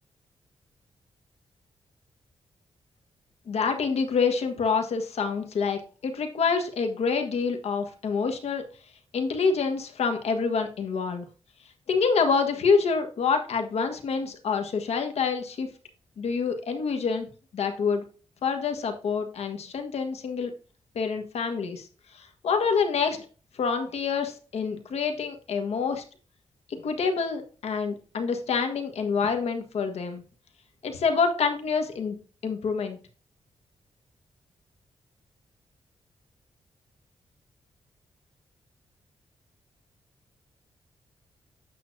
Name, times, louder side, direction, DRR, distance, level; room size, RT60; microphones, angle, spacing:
voice 1, 3.5-8.6 9.1-11.3 11.9-15.7 16.2-17.3 17.5-18.0 18.4-20.5 20.9-21.9 22.1-23.2 23.6-26.0 26.7-30.2 30.8-33.0, left 5 dB, 75° left, 5 dB, 1.4 m, -27 dB
8.5 x 6.0 x 2.6 m, 0.37 s
cardioid pair, 90°, 11 cm